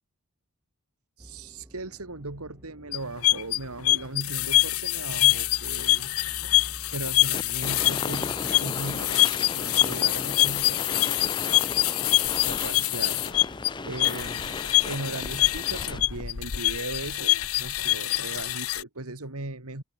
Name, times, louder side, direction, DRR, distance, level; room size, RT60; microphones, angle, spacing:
sound 1, 1.2-14.1, equal, 10° right, 1.3 m, -49 dB
voice 1, 1.2-6.1 6.9-11.9 12.5-13.3 13.8-19.8, right 2 dB, 85° right, 2.9 m, -38 dB
sound 2, 2.9-18.8, left 17 dB, 75° left, 0.7 m, -25 dB
sound 3, 7.3-16.2, left 3 dB, 20° left, 0.6 m, -36 dB
open air
head